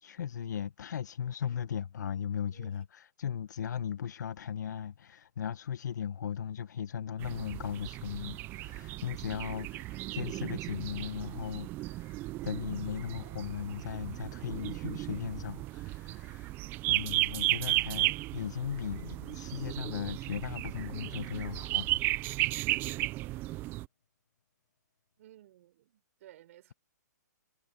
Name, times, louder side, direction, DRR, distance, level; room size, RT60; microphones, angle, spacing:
voice 1, 0.0-22.6, left 8 dB, 70° left, 1.1 m, -38 dB
sound 1, 7.2-23.9, right 18 dB, 20° right, 0.4 m, -35 dB
voice 2, 25.2-26.7, right 13 dB, 50° right, 5.2 m, -56 dB
hypercardioid pair, 145°, 10 cm